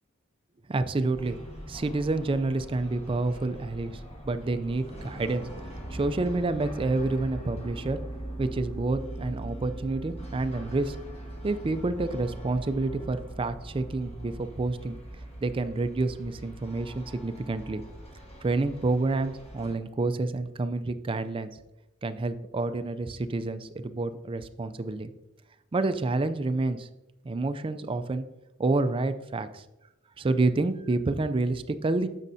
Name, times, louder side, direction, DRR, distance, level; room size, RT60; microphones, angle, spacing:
voice 1, 0.7-1.4 1.7-5.4 5.9-8.0 8.4-11.0 11.4-15.0 15.4-17.8 18.4-21.5 22.0-25.1 25.7-26.9 27.2-28.3 28.6-29.6 30.2-32.1, right 2 dB, 25° right, 10 dB, 0.4 m, -28 dB
sound 1, 1.1-19.7, right 1 dB, 30° left, 1.4 m, -41 dB
9.6 x 7.2 x 2.7 m, 0.99 s
head